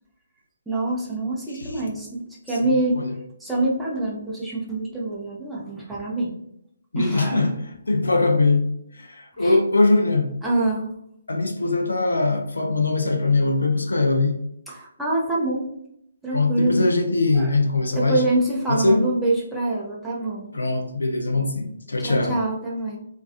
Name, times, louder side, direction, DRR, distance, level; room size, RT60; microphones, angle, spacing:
voice 1, 0.7-3.0 3.4-6.3 7.0-7.5 9.4-9.6 10.4-10.9 14.7-15.7 16.2-16.9 17.3-17.6 17.9-20.5 22.0-23.0, right 2 dB, 5° right, -6 dB, 0.5 m, -25 dB
voice 2, 6.9-7.6 7.9-8.7 9.0-10.3 11.3-14.3 16.3-18.2 18.7-19.0 20.5-22.4, left 3 dB, 70° left, 3 dB, 0.5 m, -21 dB
2.4 x 2.3 x 2.4 m, 0.75 s
figure-of-eight pair, 135°, 0 cm